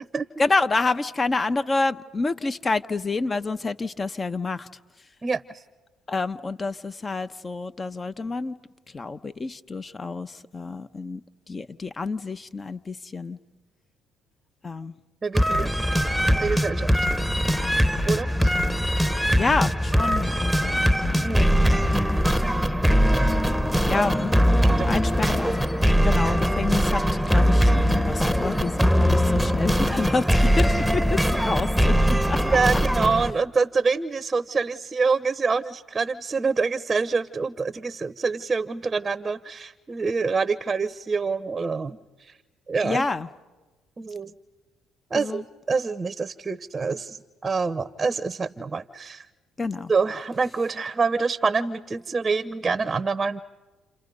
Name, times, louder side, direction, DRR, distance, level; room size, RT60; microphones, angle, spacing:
voice 1, 0.4-4.7 6.1-8.6 8.9-11.2 11.5-13.4 14.6-14.9 15.9-16.0 17.5-17.8 19.4-21.4 23.9-25.6 26.0-32.4 42.8-43.3 45.1-45.4 49.6-49.9, left 3 dB, 30° left, 12 dB, 1.0 m, -28 dB
voice 2, 15.2-15.7 16.3-16.9 18.0-18.5 21.2-21.6 23.9-24.0 24.6-24.9 26.3-26.4 32.4-42.3 42.7-43.1 44.0-44.3 45.1-45.4 45.7-47.2 47.4-49.2 49.9-53.4, right 4 dB, 30° right, 16 dB, 0.8 m, -26 dB
sound 1, 15.3-33.3, equal, ahead, 1.2 m, -21 dB
29.5 x 29.0 x 5.4 m, 1.2 s
hypercardioid pair, 60°, 0 cm